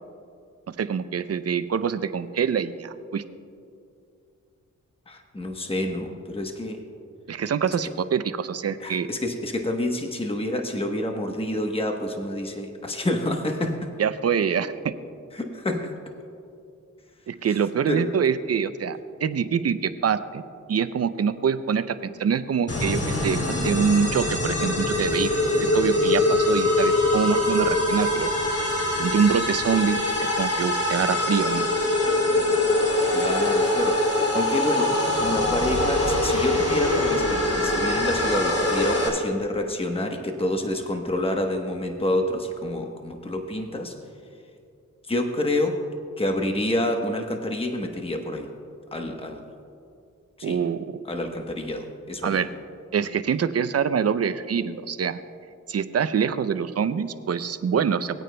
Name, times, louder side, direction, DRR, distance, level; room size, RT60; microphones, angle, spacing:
voice 1, 0.8-3.2 7.3-9.1 14.0-14.9 17.3-20.4 20.7-25.3 25.6-28.3 29.0-31.7 50.4-50.8 52.2-52.5 52.9-55.2 55.7-58.2, right 7 dB, 50° right, 13 dB, 0.5 m, -25 dB
voice 2, 5.1-6.8 7.8-7.9 8.8-13.9 15.3-16.0 17.9-18.1 33.1-43.9 45.1-45.9 46.2-48.5 48.9-49.5 50.4-50.6 51.0-52.4, left 1 dB, 20° left, 4 dB, 1.0 m, -28 dB
sound 1, 22.7-39.1, left 2 dB, 50° left, 2.8 m, -23 dB
19.0 x 9.0 x 2.2 m, 2.5 s
cardioid pair, 55°, 31 cm